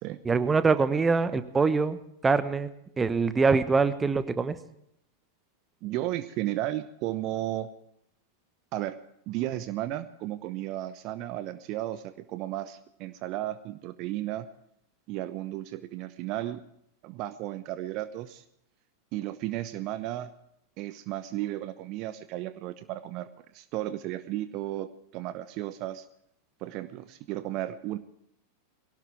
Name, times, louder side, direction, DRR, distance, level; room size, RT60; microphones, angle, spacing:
voice 1, 0.2-2.7 3.0-4.6, right 4 dB, 15° right, 12 dB, 1.2 m, -24 dB
voice 2, 5.8-7.7 8.7-9.0 9.3-14.5 15.1-16.6 17.0-18.4 19.1-20.3 20.8-23.3 23.5-26.1 26.6-28.0, right 14 dB, 40° right, 13 dB, 0.9 m, -34 dB
22.0 x 17.5 x 3.5 m, 0.76 s
figure-of-eight pair, 90°, 0 cm